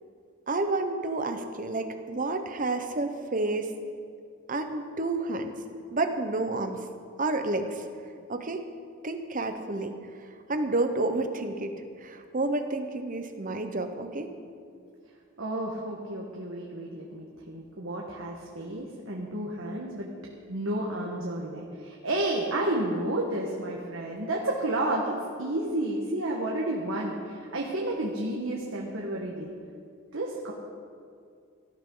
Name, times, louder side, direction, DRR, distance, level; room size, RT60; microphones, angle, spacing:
voice 1, 0.5-3.7 4.5-5.5 5.9-6.8 7.2-7.8 8.3-8.6 9.0-10.0 10.5-14.3, right 2 dB, 40° right, 7 dB, 1.0 m, -30 dB
voice 2, 15.4-20.1 20.5-29.5 30.1-30.5, right 1 dB, 80° right, -2 dB, 1.4 m, -31 dB
17.5 x 13.0 x 3.9 m, 2.3 s
head